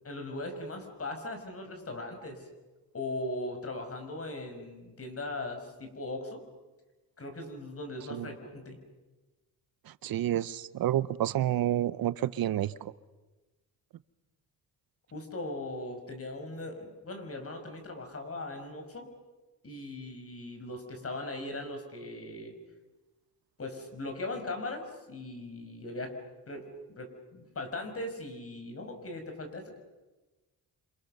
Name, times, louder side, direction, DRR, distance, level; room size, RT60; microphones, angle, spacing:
voice 1, 0.0-2.5 2.9-6.4 7.2-8.8 15.1-19.1 19.6-22.5 23.6-26.1 26.5-29.8, left 2 dB, 40° left, 5 dB, 5.9 m, -39 dB
voice 2, 9.9-12.9, right 12 dB, 70° right, 16 dB, 0.8 m, -29 dB
29.0 x 26.5 x 6.7 m, 1.2 s
cardioid pair, 90°, 37 cm